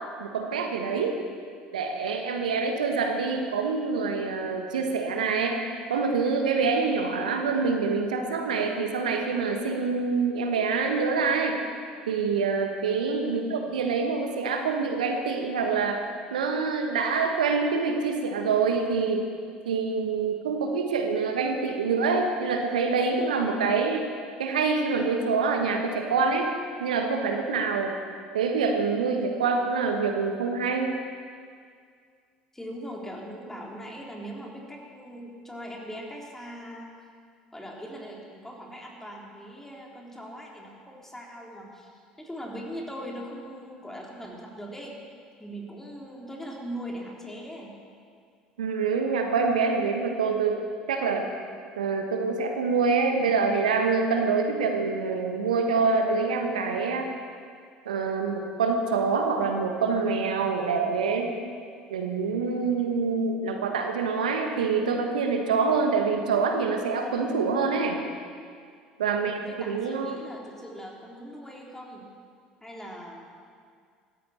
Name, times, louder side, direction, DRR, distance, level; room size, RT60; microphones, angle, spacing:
voice 1, 0.2-1.2 1.7-5.6 5.9-11.6 12.1-16.0 16.3-19.2 19.6-24.1 24.4-26.5 26.8-27.9 28.3-30.9 48.6-50.6 50.9-51.3 51.8-57.1 57.8-61.3 61.9-68.0 69.0-70.2, right 4 dB, 75° right, 4 dB, 1.5 m, -26 dB
voice 2, 13.2-13.7 32.5-36.9 37.5-47.7 69.1-72.0 72.6-73.2, equal, 10° left, -2 dB, 3.8 m, -40 dB
20.5 x 15.5 x 4.4 m, 2.1 s
figure-of-eight pair, 65°, 4 cm